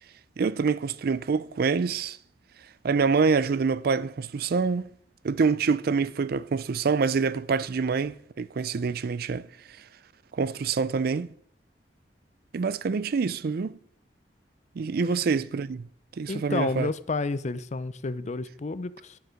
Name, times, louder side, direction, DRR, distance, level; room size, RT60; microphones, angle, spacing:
voice 1, 0.4-2.2 2.8-4.8 5.2-9.5 10.3-11.3 12.5-13.8 14.8-15.9 16.2-16.9, right 5 dB, 60° right, 0.4 m, -26 dB
voice 2, 16.3-19.2, left 3 dB, 40° left, 0.5 m, -30 dB
10.5 x 9.4 x 5.1 m
head